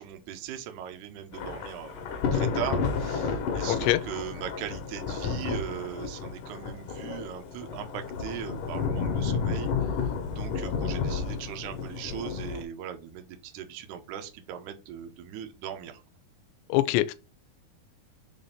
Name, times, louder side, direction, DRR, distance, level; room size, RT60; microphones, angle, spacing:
voice 1, 0.0-16.0, right 10 dB, 90° right, 1.7 m, -39 dB
Thunder / Rain, 1.3-12.6, left 5 dB, 65° left, 2.2 m, -31 dB
voice 2, 3.7-4.0 16.7-17.1, left 16 dB, 90° left, 2.8 m, -24 dB
7.0 x 2.6 x 5.6 m
omnidirectional pair, 4.9 m